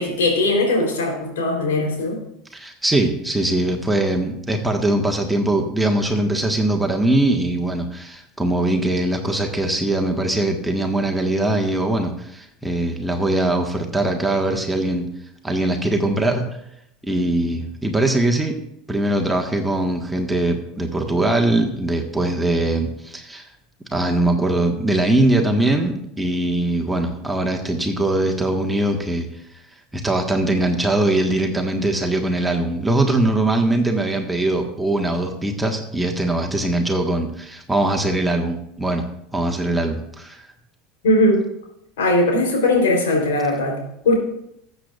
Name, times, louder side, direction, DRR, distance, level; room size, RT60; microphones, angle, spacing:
voice 1, 0.0-2.2 41.0-41.4 42.0-44.1, left 1 dB, 70° left, 0 dB, 3.6 m, -19 dB
voice 2, 2.5-15.1 15.4-16.4 17.0-18.6 18.9-23.5 23.9-29.3 29.9-39.0 39.3-40.4, right 1 dB, 5° right, 2 dB, 1.5 m, -21 dB
19.5 x 8.0 x 2.5 m, 0.78 s
figure-of-eight pair, 75°, 0 cm